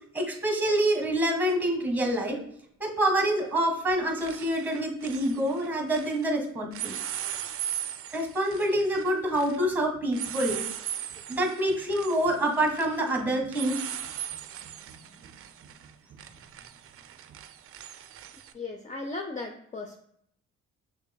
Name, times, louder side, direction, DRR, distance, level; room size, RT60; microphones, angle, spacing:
voice 1, 0.1-2.4 2.8-6.9 8.1-10.6 11.3-13.9, right 1 dB, 5° right, 2 dB, 1.6 m, -26 dB
sound 1, 1.5-1.6 3.3-3.6 3.9-6.3 6.7-18.5, right 10 dB, 50° right, 0.4 m, -39 dB
voice 2, 18.5-20.0, left 3 dB, 25° left, 3 dB, 0.5 m, -36 dB
6.0 x 3.1 x 2.2 m, 0.69 s
cardioid pair, 90°, 30 cm